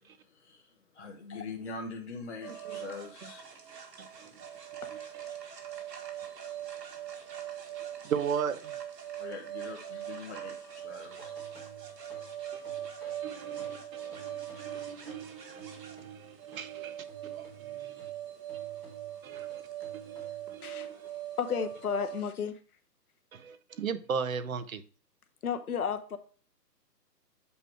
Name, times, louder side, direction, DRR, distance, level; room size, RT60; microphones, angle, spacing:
voice 1, 0.0-3.4 9.2-11.3, left 4 dB, 45° left, 0.8 m, -43 dB
sound 1, 2.4-22.2, right 10 dB, 75° right, 1.7 m, -41 dB
voice 2, 4.0-4.3 4.9-5.2 8.0-8.7 12.5-12.9 13.2-18.0 19.2-19.6 19.9-21.1 23.3-24.8, right 7 dB, 55° right, 0.7 m, -38 dB
sound 2, 11.0-16.7 17.1-20.6, right 4 dB, 5° right, 1.1 m, -54 dB
voice 3, 21.4-22.5 25.4-26.2, left 7 dB, 65° left, 0.9 m, -32 dB
8.3 x 3.1 x 4.5 m
hypercardioid pair, 170°, 49 cm